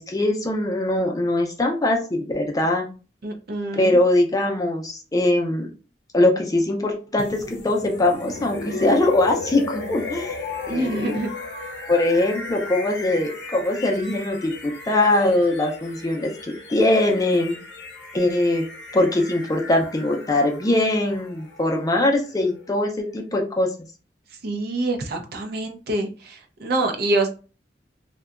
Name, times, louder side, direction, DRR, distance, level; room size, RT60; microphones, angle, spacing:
voice 1, 0.0-2.9 3.7-5.7 6.1-10.3 10.7-11.2 11.9-17.6 18.1-18.6 18.9-23.7, left 1 dB, 20° left, 2 dB, 0.5 m, -21 dB
voice 2, 3.2-4.0 10.7-11.3 24.4-27.3, right 2 dB, 60° right, 4 dB, 0.5 m, -26 dB
sound 1, 7.2-23.1, left 3 dB, 75° left, 0.5 m, -36 dB
2.7 x 2.2 x 2.4 m, 0.34 s
head